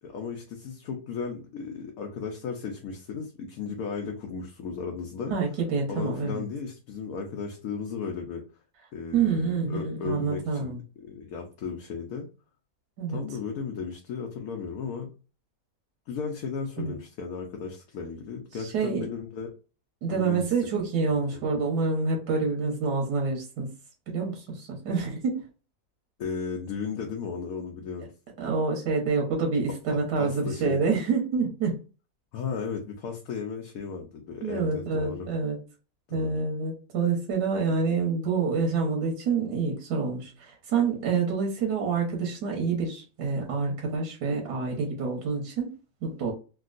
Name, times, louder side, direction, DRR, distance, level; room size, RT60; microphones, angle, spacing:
voice 1, 0.0-5.3 5.9-8.4 8.9-12.3 13.1-15.1 16.1-19.5 20.1-20.5 20.9-21.1 26.2-28.1 29.9-30.9 32.3-35.3 36.1-36.4, left 5 dB, 70° left, 1.0 m, -35 dB
voice 2, 5.3-6.4 9.1-10.8 13.0-13.2 16.8-16.9 18.7-19.0 20.0-23.7 24.1-25.4 28.4-31.7 34.4-35.6 36.1-45.7 46.0-46.3, right 4 dB, 90° right, 1.4 m, -27 dB
3.5 x 2.3 x 2.4 m
omnidirectional pair, 1.7 m